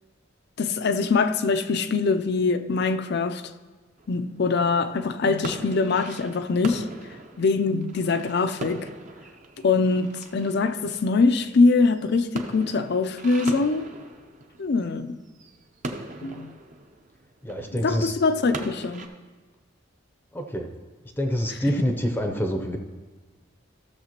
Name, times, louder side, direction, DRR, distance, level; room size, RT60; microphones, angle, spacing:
voice 1, 0.6-3.4 4.1-6.9 7.4-8.9 9.6-13.9 14.6-15.2 16.2-16.5 17.7-19.1, left 4 dB, 60° left, 0.5 m, -23 dB
sound 1, 4.0-19.1, right 2 dB, 40° right, 0.7 m, -40 dB
voice 2, 17.4-18.1 20.3-20.7 21.2-22.8, equal, 10° left, 0.6 m, -26 dB
15.0 x 6.7 x 2.9 m
head